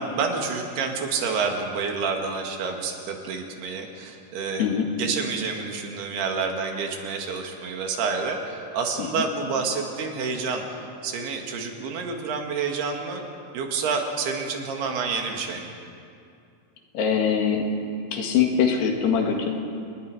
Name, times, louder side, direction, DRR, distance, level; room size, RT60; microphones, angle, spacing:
voice 1, 0.0-4.7 5.0-10.6 11.0-13.2 13.5-15.7, right 5 dB, 80° right, 3 dB, 3.9 m, -28 dB
voice 2, 4.6-4.9 9.1-9.3 16.9-17.7 18.1-19.5, left 7 dB, 85° left, 2 dB, 4.0 m, -22 dB
29.5 x 20.5 x 4.9 m, 2.5 s
omnidirectional pair, 4.6 m